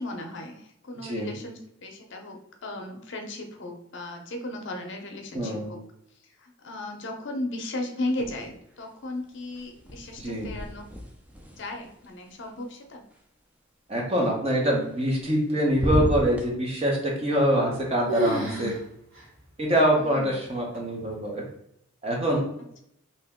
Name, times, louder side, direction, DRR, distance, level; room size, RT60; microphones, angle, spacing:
voice 1, 0.0-5.8 6.2-10.9 11.5-13.0 20.0-20.4, left 2 dB, 60° left, 4 dB, 0.6 m, -36 dB
voice 2, 5.3-5.7 10.2-10.5 13.9-18.7 19.6-21.4 22.0-22.4, equal, 30° right, -1 dB, 0.8 m, -24 dB
sound 1, 8.1-8.8 9.1-13.2 14.8-15.4 15.7-16.5, equal, 5° right, 0.4 m, -34 dB
sound 2, 17.3-17.8 18.1-18.8 19.1-19.2 19.9-20.0 20.7-21.1, equal, 70° right, 1.3 m, -30 dB
2.8 x 2.8 x 3.5 m, 0.76 s
head